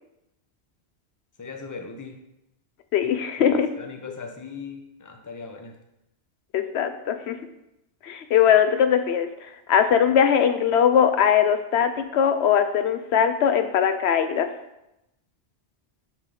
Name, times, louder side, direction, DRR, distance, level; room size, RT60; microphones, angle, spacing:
voice 1, 1.4-2.2 3.4-5.7, left 4 dB, 20° left, 3 dB, 0.6 m, -39 dB
voice 2, 2.9-3.7 6.5-7.4 8.0-9.3 9.7-14.5, left 8 dB, 75° left, 9 dB, 0.8 m, -20 dB
7.2 x 3.3 x 5.4 m, 0.87 s
omnidirectional pair, 1.1 m